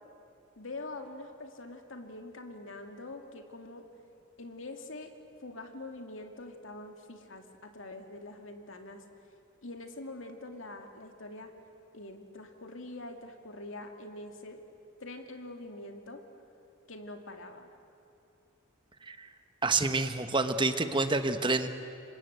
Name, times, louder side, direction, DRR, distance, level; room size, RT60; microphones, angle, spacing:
voice 1, 0.6-3.9 4.4-5.1 5.4-9.0 9.6-11.5 11.9-14.6 15.0-16.2 16.9-17.7, left 2 dB, 65° left, 5 dB, 2.5 m, -44 dB
voice 2, 19.6-21.7, right 3 dB, 25° right, 9 dB, 1.1 m, -28 dB
28.5 x 25.5 x 8.2 m, 2.8 s
head